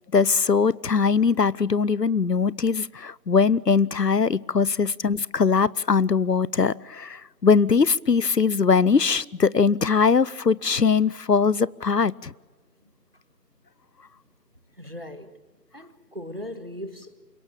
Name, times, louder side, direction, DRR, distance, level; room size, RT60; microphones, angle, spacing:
voice 1, 0.1-12.3, left 5 dB, 75° left, 23 dB, 0.8 m, -21 dB
voice 2, 14.7-15.4 15.7-17.1, left 1 dB, 35° right, 9 dB, 1.7 m, -38 dB
28.5 x 18.5 x 8.9 m, 1.3 s
figure-of-eight pair, 175°, 49 cm